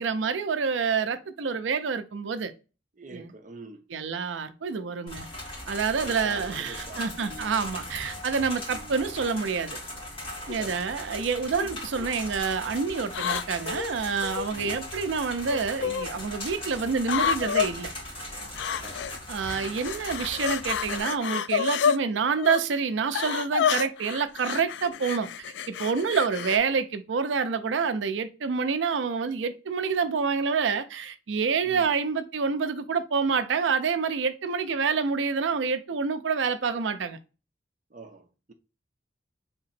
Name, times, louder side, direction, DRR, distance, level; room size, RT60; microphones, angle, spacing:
voice 1, 0.0-2.5 3.1-3.3 3.9-5.3 5.7-9.8 10.5-17.9 19.3-25.3 25.7-37.2, right 5 dB, 85° right, 0.5 m, -27 dB
voice 2, 3.0-3.8 6.0-7.5 8.7-8.9 10.6-10.8 11.6-11.8 14.5-14.8 18.8-19.0 31.6-31.9 37.9-38.5, right 2 dB, 45° right, 0.6 m, -44 dB
sound 1, 5.1-21.0, left 1 dB, 30° left, 1.9 m, -39 dB
sound 2, 10.5-10.8 11.5-12.1 13.1-14.5 15.5-16.1 17.0-17.7 18.5-19.2 19.5-22.0 22.4-22.6 23.1-26.6, left 8 dB, 70° left, 0.3 m, -29 dB
3.5 x 2.9 x 4.1 m
head